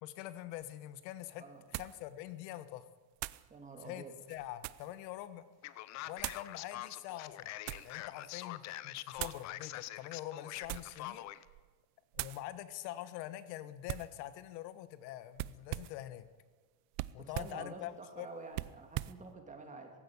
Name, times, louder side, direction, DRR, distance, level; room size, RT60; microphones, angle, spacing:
voice 1, 0.0-1.4 1.7-2.9 3.8-5.4 6.1-7.5 7.8-11.2 12.1-16.3 17.1-18.3, left 14 dB, 85° left, 13 dB, 1.5 m, -45 dB
sound 1, 0.6-0.7 1.7-2.0 3.2-3.5 4.2-5.0 6.2-6.5 7.3-7.9 9.2-9.5 10.6-11.0 11.5-11.7 12.1-12.4 13.9-14.2 15.4-16.0 16.9-17.6 18.5-19.2, right 19 dB, 55° right, 0.6 m, -41 dB
voice 2, 3.5-4.1 17.2-19.9, right 3 dB, 15° right, 4 dB, 2.5 m, -48 dB
Male speech man speaking, 5.6-11.4, left 15 dB, 35° left, 0.7 m, -44 dB
17.0 x 16.0 x 9.9 m, 1.4 s
cardioid pair, 170°, 49 cm